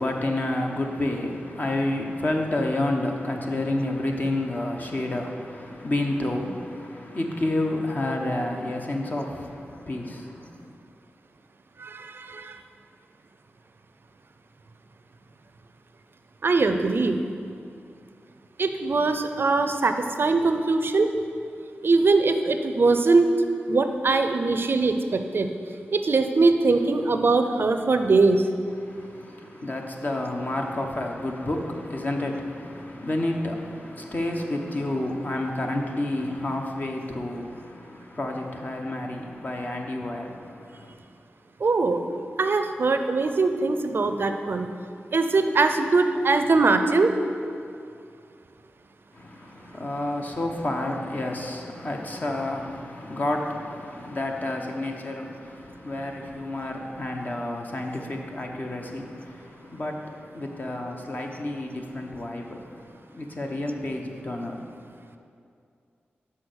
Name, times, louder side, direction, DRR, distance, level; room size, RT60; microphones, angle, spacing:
voice 1, 0.0-10.7 28.8-40.9 49.1-64.6, left 1 dB, 40° left, 2 dB, 1.0 m, -30 dB
voice 2, 11.8-12.6 16.4-17.2 18.6-21.1 21.8-23.3 23.7-25.5 25.9-28.4 41.6-42.0 42.4-44.7 45.1-47.1, right 3 dB, 60° right, 7 dB, 0.5 m, -22 dB
6.1 x 5.5 x 6.3 m, 2.4 s
cardioid pair, 50°, 4 cm